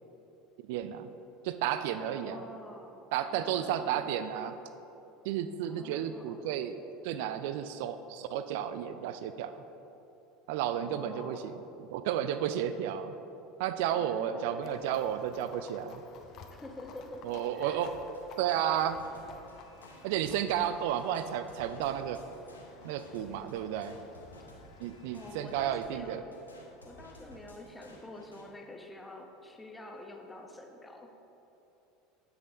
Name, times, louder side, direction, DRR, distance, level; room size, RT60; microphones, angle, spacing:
voice 1, 0.7-1.1 1.4-2.5 3.1-4.6 5.2-9.5 10.5-11.5 11.9-13.2 13.6-16.0 17.2-17.9 18.4-19.0 20.0-22.2 22.8-24.0 24.8-26.2, right 10 dB, 60° right, 10 dB, 0.4 m, -32 dB
voice 2, 1.8-4.2 5.7-6.6 10.7-11.7 13.9-14.8 16.5-17.9 25.1-26.2 26.8-31.1, left 1 dB, 10° left, 2 dB, 1.1 m, -48 dB
Livestock farm animals working animals, 14.6-25.9, left 5 dB, 45° left, 0.7 m, -54 dB
sound 1, 17.8-28.5, equal, 85° left, 1.0 m, -55 dB
9.3 x 7.6 x 3.8 m, 3.0 s
figure-of-eight pair, 75°, 0 cm